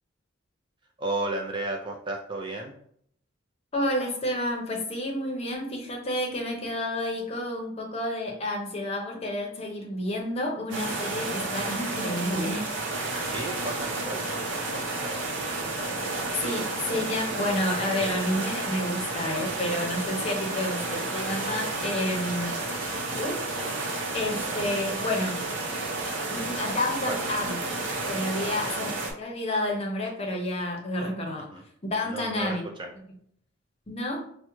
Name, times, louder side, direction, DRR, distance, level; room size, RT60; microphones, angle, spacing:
voice 1, 1.0-2.7 11.1-11.4 13.2-14.2 14.7-15.2 20.5-20.6 27.1-27.2 28.4-28.7 31.5-31.6 32.0-32.9, right 2 dB, 25° right, 1 dB, 0.3 m, -34 dB
voice 2, 3.7-12.7 16.3-22.6 23.2-23.6 24.1-25.4 26.3-27.6 28.0-31.5 31.9-32.6 33.9-34.2, left 1 dB, 30° left, 0 dB, 0.6 m, -30 dB
sound 1, 10.7-29.1, right 2 dB, 65° right, 0.7 m, -31 dB
4.6 x 2.1 x 3.0 m, 0.66 s
head